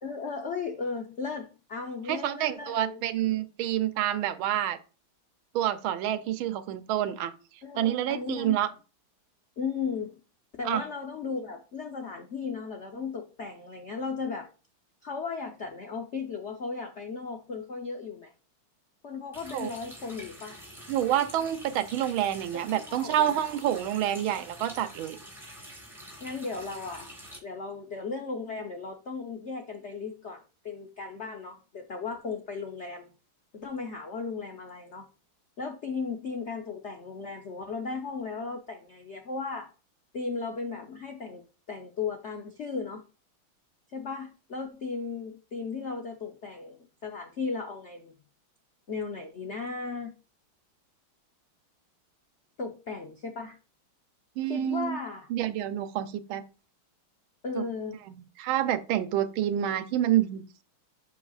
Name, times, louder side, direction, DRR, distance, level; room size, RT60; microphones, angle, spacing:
voice 1, 0.0-3.0 7.6-8.6 9.6-10.2 10.6-14.5 15.0-18.3 19.0-20.6 22.5-23.3 26.2-27.1 27.4-33.1 33.5-35.1 35.6-39.7 40.1-41.4 41.7-43.0 43.9-48.1 48.9-50.1 52.6-53.6 54.5-55.3 57.4-57.9, left 4 dB, 60° left, 0.7 m, -36 dB
voice 2, 2.1-4.8 5.5-7.3 7.8-8.7 10.6-10.8 19.5-19.7 20.9-25.2 54.4-55.0 55.3-56.4 57.5-57.6 58.4-60.4, right 11 dB, 85° right, 1.5 m, -28 dB
Water tap faucet, 19.3-27.4, equal, ahead, 2.7 m, -47 dB
7.6 x 6.6 x 2.4 m
omnidirectional pair, 2.2 m